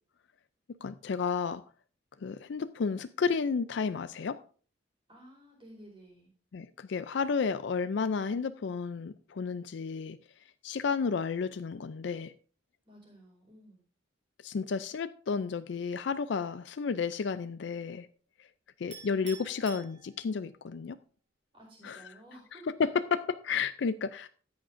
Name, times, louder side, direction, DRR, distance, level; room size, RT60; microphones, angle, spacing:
voice 1, 0.8-1.6 2.2-4.4 6.5-10.2 10.6-12.3 14.4-18.1 18.4-18.5 18.8-21.0 21.8-22.1 22.8-24.3, left 5 dB, 60° left, 12 dB, 0.4 m, -32 dB
voice 2, 5.1-6.3 12.9-13.8 21.5-22.8, right 1 dB, 25° right, -1 dB, 4.5 m, -54 dB
Chink clink, 18.9-20.6, right 5 dB, 65° right, 3.0 m, -49 dB
14.0 x 9.4 x 2.6 m, 0.41 s
head